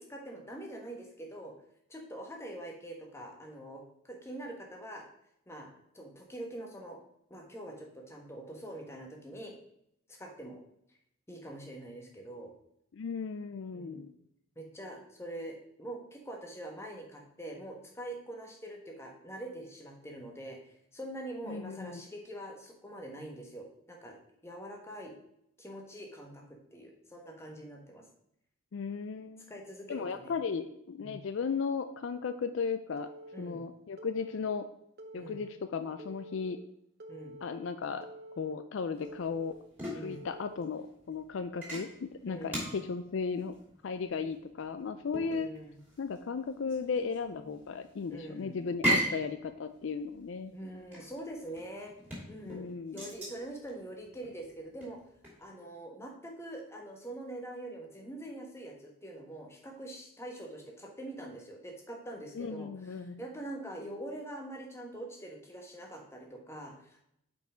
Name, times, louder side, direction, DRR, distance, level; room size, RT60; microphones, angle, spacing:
voice 1, 0.0-1.5 1.9-5.0 5.5-5.7 5.9-7.0 7.3-9.6 10.1-10.6 10.9-11.0 11.3-12.5 13.7-14.1 14.6-25.1 25.6-28.0 29.5-30.3 31.0-31.2 33.3-33.7 35.1-35.4 37.1-37.4 39.9-40.3 42.3-42.7 45.3-45.8 48.1-48.6 50.5-51.9 52.3-55.0 55.4-67.0, right 1 dB, 10° left, 1 dB, 1.2 m, -44 dB
voice 2, 12.9-14.1 21.5-22.0 28.7-29.5 29.9-33.1 33.4-34.7 35.1-36.6 37.4-38.1 38.4-39.5 39.9-43.5 43.8-45.5 46.0-50.5 52.5-53.0 62.3-63.2, left 5 dB, 60° left, 10 dB, 0.4 m, -36 dB
Telephone, 33.0-33.5 34.0-34.5 35.0-35.5 36.0-36.5 37.0-37.5 38.0-38.5 39.0-39.5 40.0-40.5, right 1 dB, 50° right, 0.8 m, -48 dB
sound 1, 38.9-55.5, right 1 dB, 10° right, 2.8 m, -38 dB
5.4 x 5.3 x 5.0 m, 0.74 s
head